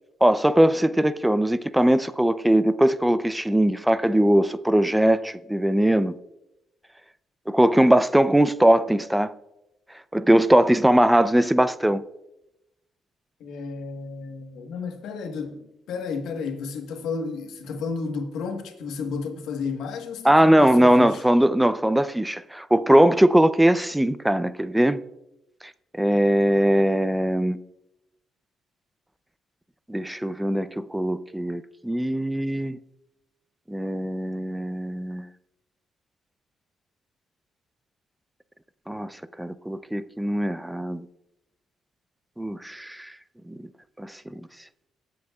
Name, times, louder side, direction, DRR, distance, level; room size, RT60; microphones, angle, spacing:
voice 1, 0.2-6.1 7.5-9.3 10.1-12.0 20.2-25.0 26.0-27.6 29.9-32.8 33.7-35.2 38.9-39.1 39.4-41.0 42.4-43.1 43.5-43.6 44.0-44.1, right 1 dB, 5° right, 0.5 m, -20 dB
voice 2, 13.4-21.2, left 5 dB, 85° left, 1.2 m, -32 dB
23.0 x 7.8 x 2.3 m
cardioid pair, 90°, 0 cm